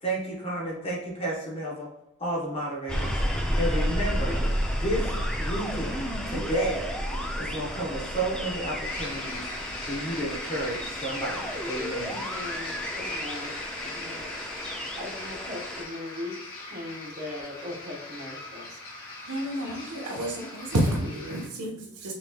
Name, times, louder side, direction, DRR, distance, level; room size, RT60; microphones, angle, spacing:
voice 1, 0.0-1.9 2.2-4.4 4.7-6.9 7.4-9.4 9.8-12.2, right 1 dB, 25° left, -4 dB, 1.0 m, -32 dB
sound 1, 2.9-15.8, equal, 5° left, 0.5 m, -31 dB
sound 2, 8.8-21.5, left 2 dB, 70° left, 1.5 m, -40 dB
voice 2, 12.0-13.6 13.8-14.3 14.6-18.7, left 2 dB, 45° right, -5 dB, 1.2 m, -39 dB
voice 3, 19.3-22.1, right 1 dB, 90° right, 0 dB, 1.1 m, -29 dB
5.9 x 3.1 x 2.3 m, 0.87 s
head